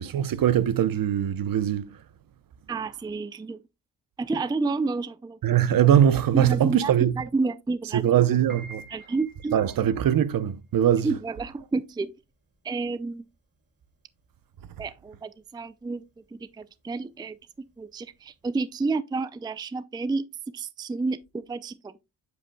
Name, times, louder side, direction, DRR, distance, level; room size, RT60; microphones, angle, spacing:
voice 1, 0.0-1.9 5.4-7.2 7.9-8.9 9.5-11.1, right 10 dB, 55° right, 0.8 m, -22 dB
voice 2, 2.7-3.6 4.2-5.4 6.3-8.0 8.9-9.6 11.0-12.1 12.6-13.2 14.8-16.0 16.3-20.3 20.5-22.0, right 3 dB, 10° right, 0.4 m, -30 dB
Piano, 8.3-18.7, right 4 dB, 25° right, 3.4 m, -51 dB
8.1 x 7.6 x 2.3 m
supercardioid pair, 65°, 42 cm